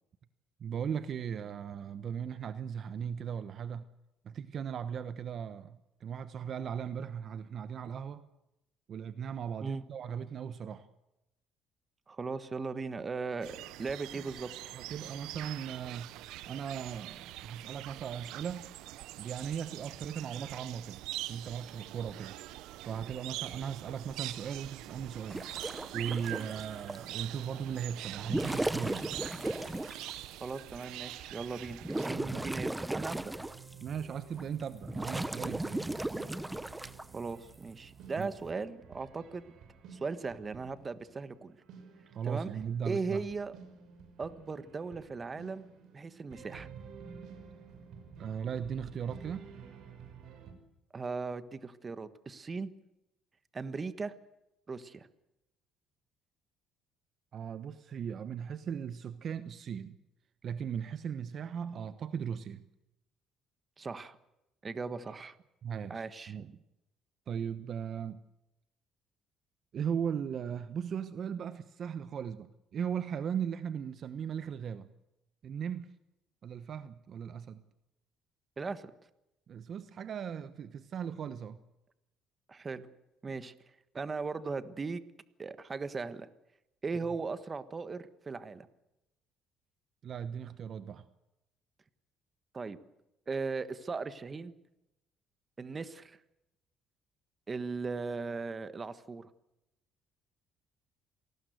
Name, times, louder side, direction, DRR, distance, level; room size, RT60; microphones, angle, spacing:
voice 1, 0.6-3.8 4.2-8.2 8.9-10.9 14.1-14.2 14.7-16.1 16.5-18.6 19.2-22.4 22.8-25.5 25.9-29.1 32.2-32.5 33.8-35.9 38.2-38.3 42.1-43.3 47.1-47.2 48.2-49.5 57.3-60.0 60.4-62.6 65.6-66.5 67.3-68.2 69.7-74.9 75.4-75.9 76.4-77.6 79.5-81.6 90.0-91.1, right 7 dB, 45° right, 13 dB, 1.1 m, -38 dB
voice 2, 12.1-14.5 30.4-33.3 37.1-39.4 39.9-41.5 42.2-42.5 42.8-43.6 44.2-46.7 50.9-52.7 53.5-54.1 54.7-55.1 63.8-64.2 64.6-65.3 65.9-66.4 78.6-78.9 82.5-82.9 83.2-83.5 83.9-85.0 85.4-86.3 86.8-88.7 92.5-92.8 93.3-94.5 95.6-96.2 97.5-99.3, right 4 dB, 25° right, 13 dB, 1.4 m, -38 dB
sound 1, 13.4-32.1, right 16 dB, 85° right, 0.9 m, -44 dB
sound 2, 25.3-27.0 28.1-30.2 30.8-30.9 31.4-33.9 34.4-37.0 38.2-38.5, right 1 dB, 10° right, 0.9 m, -36 dB
sound 3, 33.1-50.5, right 6 dB, 65° right, 5.9 m, -52 dB
27.5 x 19.0 x 8.0 m, 0.91 s
cardioid pair, 130°, 0 cm